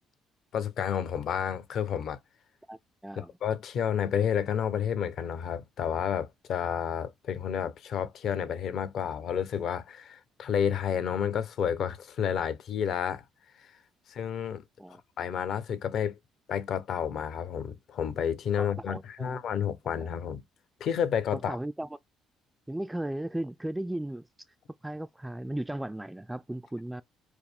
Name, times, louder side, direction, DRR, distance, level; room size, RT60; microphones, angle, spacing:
voice 1, 0.5-2.2 3.4-13.2 14.1-14.6 15.2-16.2 16.5-20.4 20.8-21.6, left 8 dB, 65° left, 0.8 m, -30 dB
voice 2, 2.7-3.3 14.8-15.0 18.5-19.4 19.9-20.1 21.3-21.9 22.7-24.3 24.8-27.0, right 1 dB, 10° right, 0.3 m, -36 dB
4.8 x 2.0 x 3.5 m
supercardioid pair, 65°, 0 cm